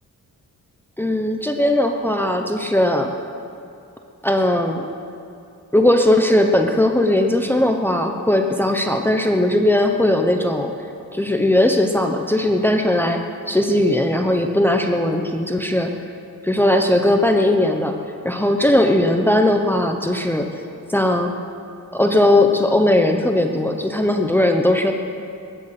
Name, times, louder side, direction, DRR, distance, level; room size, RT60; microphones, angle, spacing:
voice 1, 1.0-3.1 4.2-4.8 5.7-10.7 11.1-13.2 13.5-15.9 16.4-18.0 18.2-20.5 20.9-21.3 21.9-24.9, left 1 dB, 5° left, 4 dB, 0.9 m, -18 dB
21.5 x 10.5 x 6.0 m, 2.6 s
wide cardioid pair, 110°, 31 cm